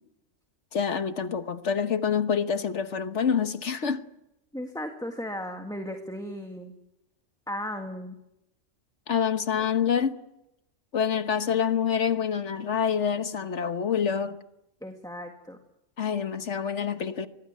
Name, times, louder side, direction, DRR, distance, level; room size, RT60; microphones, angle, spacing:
voice 1, 0.7-4.0 9.1-10.2 10.9-14.4 16.0-17.3, left 7 dB, 65° left, 1.6 m, -26 dB
voice 2, 4.5-6.7 7.5-8.2 9.5-9.6 14.8-15.6, equal, 5° left, 1.8 m, -36 dB
24.5 x 19.5 x 9.5 m
omnidirectional pair, 1.3 m